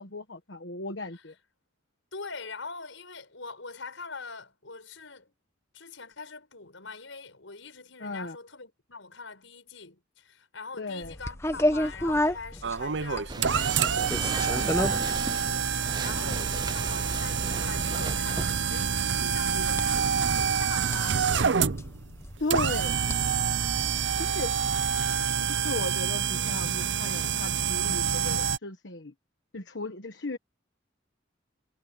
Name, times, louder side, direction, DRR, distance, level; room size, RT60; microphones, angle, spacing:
voice 1, 0.0-1.3 8.0-8.4 10.8-11.1 14.5-14.7 22.4-22.9 24.2-24.5 25.4-29.1 29.5-30.4, left 2 dB, 65° left, 1.4 m, -36 dB
voice 2, 2.1-5.3 5.7-21.6, left 4 dB, 80° left, 5.7 m, -43 dB
sound 1, 11.0-25.2, left 1 dB, 15° left, 1.2 m, -34 dB
sound 2, 12.6-28.6, right 7 dB, 65° right, 0.7 m, -27 dB
sound 3, 13.3-18.6, right 3 dB, 20° right, 0.6 m, -36 dB
head